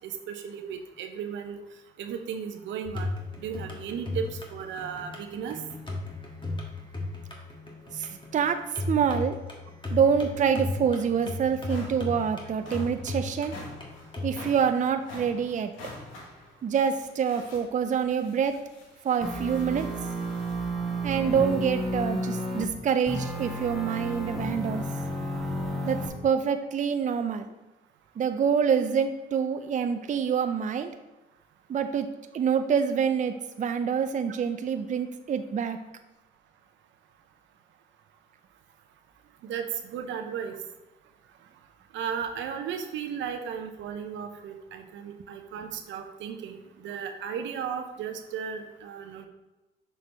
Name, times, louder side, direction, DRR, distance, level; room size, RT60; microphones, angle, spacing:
voice 1, 0.0-1.6 2.0-3.1 3.4-5.6 12.6-12.7 39.4-40.6 41.9-49.3, right 7 dB, 80° right, 6 dB, 0.7 m, -35 dB
sound 1, 2.9-14.4, left 2 dB, 25° left, 1.6 m, -36 dB
voice 2, 7.9-8.6 8.9-9.4 9.9-13.6 14.2-15.7 16.6-18.6 19.0-19.9 21.0-24.8 25.8-26.0 26.2-27.4 28.2-30.9 31.7-32.1 32.3-35.8, right 7 dB, 40° right, 8 dB, 0.5 m, -26 dB
sound 2, 11.6-20.7, left 2 dB, 90° left, 1.4 m, -47 dB
sound 3, 19.2-22.7 23.1-26.1, right 1 dB, ahead, 1.4 m, -31 dB
6.5 x 4.6 x 3.4 m, 1.1 s
supercardioid pair, 70°, 19 cm